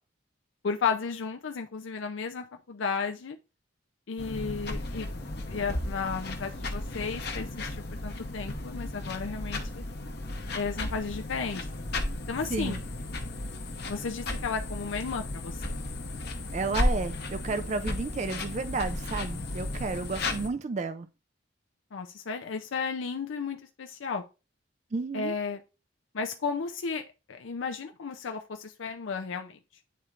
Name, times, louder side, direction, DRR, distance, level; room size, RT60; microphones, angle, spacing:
voice 1, 0.6-3.4 4.1-5.1 5.5-9.6 10.5-11.7 12.3-12.8 13.9-15.7 21.9-24.2 25.1-25.6 26.1-29.6, left 5 dB, 85° left, 0.5 m, -33 dB
sound 1, 4.2-20.5, left 2 dB, 55° left, 0.9 m, -34 dB
voice 2, 16.5-21.1 24.9-25.3, right 4 dB, 35° right, 0.4 m, -32 dB
9.3 x 4.3 x 2.4 m
head